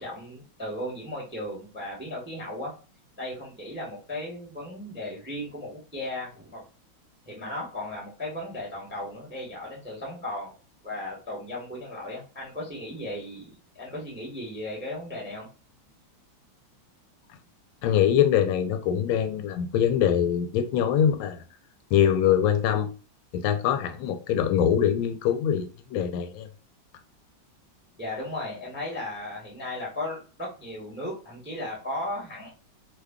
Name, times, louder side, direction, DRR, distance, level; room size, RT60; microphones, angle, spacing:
voice 1, 0.0-2.7 3.2-6.6 7.2-10.6 10.8-15.5 28.0-32.5, left 1 dB, 10° right, 0.6 m, -36 dB
voice 2, 17.8-21.4 21.9-22.9 23.3-26.5, left 9 dB, 85° left, 1.4 m, -23 dB
3.2 x 2.2 x 3.5 m
omnidirectional pair, 2.2 m